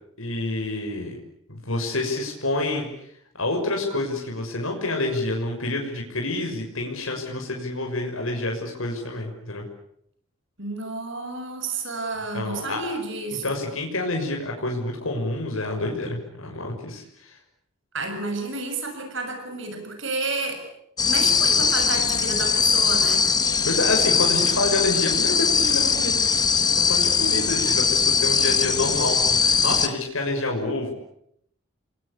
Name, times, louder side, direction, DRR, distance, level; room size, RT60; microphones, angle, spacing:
voice 1, 0.2-1.2 1.5-2.9 3.4-9.6 12.3-12.8 13.4-17.4 23.6-26.2 26.6-30.9, left 2 dB, 80° left, 1 dB, 6.3 m, -28 dB
voice 2, 10.6-13.5 17.9-20.6 21.0-23.3, right 3 dB, 60° right, 6 dB, 7.1 m, -31 dB
sound 1, 21.0-29.9, left 5 dB, 20° left, 1.4 m, -21 dB
30.0 x 22.5 x 8.6 m, 0.73 s
head